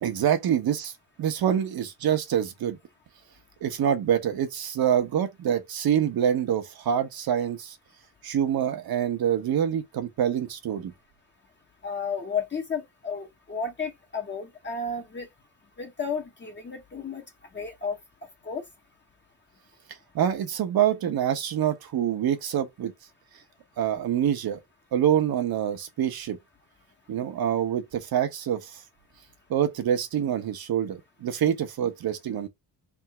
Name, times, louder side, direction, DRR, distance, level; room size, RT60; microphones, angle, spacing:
voice 1, 0.0-0.9 1.2-2.8 3.6-7.7 8.2-10.9 20.1-22.9 23.8-24.6 24.9-26.4 27.1-28.7 29.5-32.5, right 9 dB, 70° right, 1.1 m, -26 dB
voice 2, 11.8-15.3 15.8-17.2 17.5-18.0 18.5-18.6, left 5 dB, 30° left, 1.0 m, -32 dB
3.7 x 2.7 x 4.5 m
wide cardioid pair, 160°, 37 cm